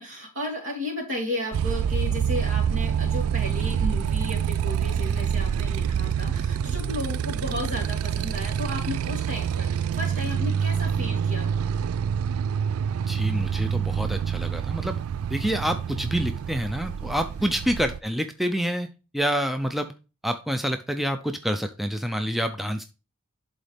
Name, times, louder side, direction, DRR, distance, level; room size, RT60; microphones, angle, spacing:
voice 1, 0.0-11.5 17.4-17.5, left 1 dB, 65° right, -1 dB, 3.1 m, -34 dB
Motorcycle, 1.5-18.0, right 7 dB, 90° right, 0.3 m, -27 dB
voice 2, 13.1-15.0 15.3-18.9 19.1-19.9 20.2-22.8, equal, ahead, 6 dB, 0.4 m, -27 dB
11.5 x 3.9 x 3.4 m, 0.31 s
head